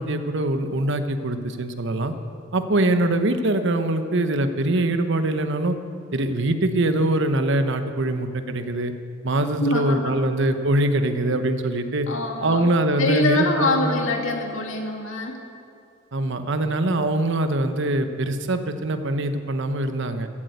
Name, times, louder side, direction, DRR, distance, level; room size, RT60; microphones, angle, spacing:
voice 1, 0.0-2.1 2.5-5.7 6.1-8.9 9.2-12.1 12.4-14.0 16.1-20.3, right 1 dB, 65° right, 9 dB, 0.9 m, -23 dB
voice 2, 9.6-10.1 12.1-12.7 13.0-15.4, left 2 dB, 85° left, 2 dB, 2.0 m, -24 dB
15.0 x 8.5 x 8.1 m, 2.4 s
head